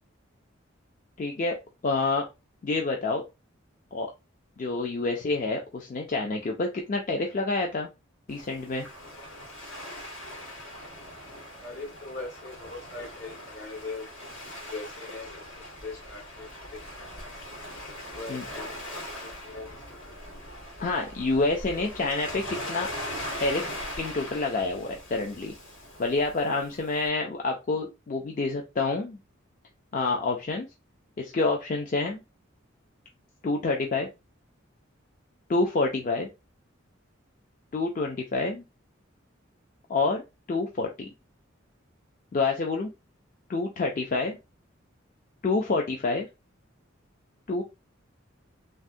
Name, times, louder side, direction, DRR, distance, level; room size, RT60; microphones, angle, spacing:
voice 1, 1.2-1.6 1.8-2.3 2.6-3.2 3.9-4.1 4.6-7.9 8.3-8.9 18.3-18.4 20.8-22.9 23.4-23.6 24.0-25.5 26.0-29.2 29.9-30.7 31.2-32.2 33.4-34.1 35.5-36.3 37.7-38.6 39.9-40.2 40.5-41.1 42.3-42.9 43.5-44.4 45.4-46.3 47.5-47.6, left 3 dB, 40° left, 0.4 m, -27 dB
Waves surf, 8.3-27.1, left 1 dB, 90° left, 1.6 m, -41 dB
voice 2, 11.5-14.0 14.6-17.1 18.1-20.1 21.8-21.9, left 3 dB, 70° left, 1.5 m, -41 dB
3.4 x 2.1 x 2.5 m
head